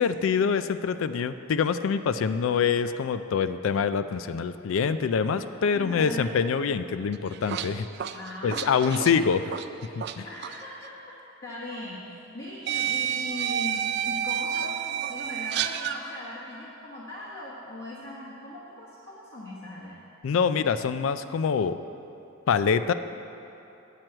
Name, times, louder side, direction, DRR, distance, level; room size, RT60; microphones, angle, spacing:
voice 1, 0.0-7.9 8.4-9.4 10.0-10.3 20.2-21.8 22.5-22.9, left 6 dB, 75° left, 12 dB, 0.3 m, -25 dB
voice 2, 5.7-6.3 8.1-9.2 10.2-20.0, left 1 dB, 50° left, -7 dB, 1.2 m, -39 dB
sound 1, 7.1-10.2 10.4-10.6 11.7-11.8 12.7-16.0, right 9 dB, 55° right, 0.3 m, -30 dB
9.2 x 4.6 x 7.6 m, 2.9 s
head